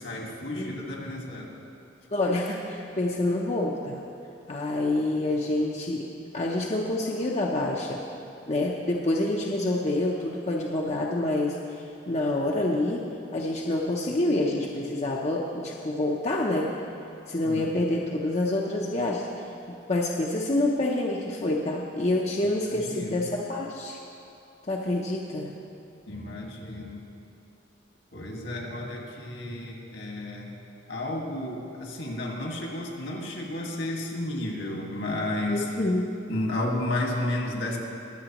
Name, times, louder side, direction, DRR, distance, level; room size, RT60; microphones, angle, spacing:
voice 1, 0.0-1.5 17.4-17.7 22.4-23.3 26.1-27.0 28.1-30.6 30.9-35.7 36.3-37.8, left 1 dB, 70° left, 0 dB, 1.8 m, -32 dB
voice 2, 2.1-4.0 4.5-6.1 6.3-8.0 8.5-13.1 13.3-16.7 17.3-24.0 24.7-25.5 35.5-36.2, left 1 dB, 35° left, -2 dB, 0.6 m, -27 dB
22.0 x 8.0 x 3.0 m, 2.6 s
head